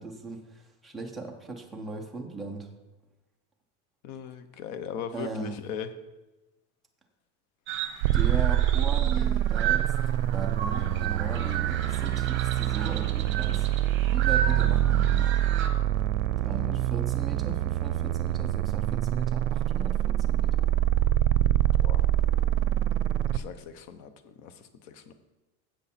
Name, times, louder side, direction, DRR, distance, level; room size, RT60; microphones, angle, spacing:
voice 1, 0.0-2.7 5.1-5.6 8.1-9.9 10.2-13.7 14.1-15.3 16.4-20.7, right 3 dB, ahead, -1 dB, 0.3 m, -38 dB
voice 2, 4.0-5.9 21.8-22.1 23.3-24.5 24.8-25.1, left 7 dB, 40° left, 10 dB, 0.9 m, -39 dB
sound 1, 7.7-15.7, right 9 dB, 25° right, 0.9 m, -34 dB
sound 2, 8.0-23.4, right 12 dB, 60° right, 0.7 m, -25 dB
13.5 x 8.2 x 4.2 m, 1.1 s
supercardioid pair, 170°, 44 cm